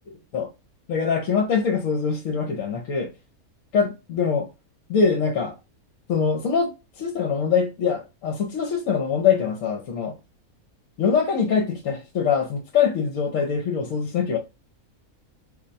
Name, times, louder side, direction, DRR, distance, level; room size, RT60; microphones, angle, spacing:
voice 1, 0.9-3.1 3.7-4.5 4.9-5.6 6.1-10.1 11.0-14.4, left 6 dB, 70° left, 1.0 m, -23 dB
2.5 x 2.2 x 3.9 m
omnidirectional pair, 1.5 m